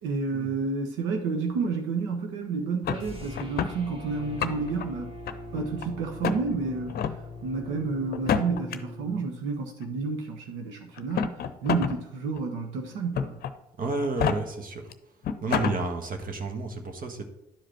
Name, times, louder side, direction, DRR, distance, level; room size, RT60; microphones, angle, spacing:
voice 1, 0.0-5.1 5.5-7.0 7.4-13.4, right 4 dB, 70° right, 2 dB, 1.2 m, -30 dB
sound 1, 2.8-3.8 4.2-4.8 5.3-5.8 6.2-6.4 6.9-7.2 8.1-8.8 9.8-9.9 11.0-12.0 12.4-12.5 13.1-13.5 14.0-14.4 14.9-15.0 15.2-15.8, left 7 dB, 55° left, 0.7 m, -28 dB
sound 2, 2.9-9.3, left 2 dB, 25° right, 2.5 m, -42 dB
voice 2, 13.8-14.9 15.4-17.2, right 3 dB, 45° right, 5 dB, 1.4 m, -31 dB
10.5 x 4.9 x 4.5 m, 0.88 s
hypercardioid pair, 60°, 20 cm